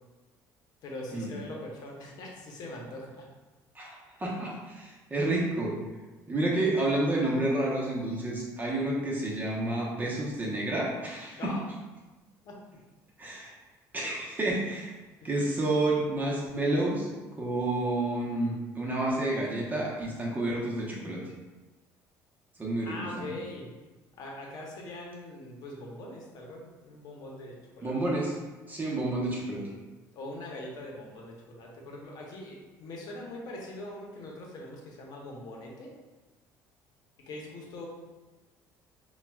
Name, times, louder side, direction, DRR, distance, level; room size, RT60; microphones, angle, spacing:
voice 1, 0.8-3.2 11.4-11.7 12.4-12.6 15.2-15.3 22.8-23.7 24.2-27.9 30.1-35.9 37.3-37.9, left 1 dB, 60° left, -1 dB, 0.8 m, -42 dB
voice 2, 3.7-5.8 6.3-11.5 13.2-13.5 13.9-14.9 15.2-17.1 17.4-21.2 22.6-23.3 27.8-28.3 28.7-29.7, right 2 dB, 25° right, -3 dB, 0.9 m, -30 dB
5.5 x 2.3 x 2.3 m, 1.2 s
cardioid pair, 100°, 8 cm